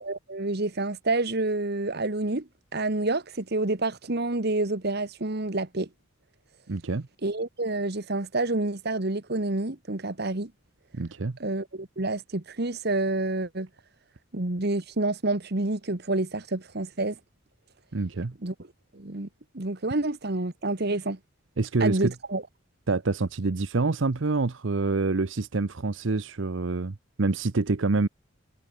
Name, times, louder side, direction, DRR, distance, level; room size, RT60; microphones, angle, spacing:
voice 1, 0.0-2.4 2.7-5.9 7.2-10.5 11.4-13.7 14.3-17.1 18.4-18.5 19.0-19.3 19.5-21.2 21.8-22.4, right 2 dB, 50° right, 1.6 m, -28 dB
voice 2, 6.7-7.1 10.9-11.4 17.9-18.3 21.6-22.1 22.9-28.1, right 3 dB, 70° right, 0.8 m, -26 dB
head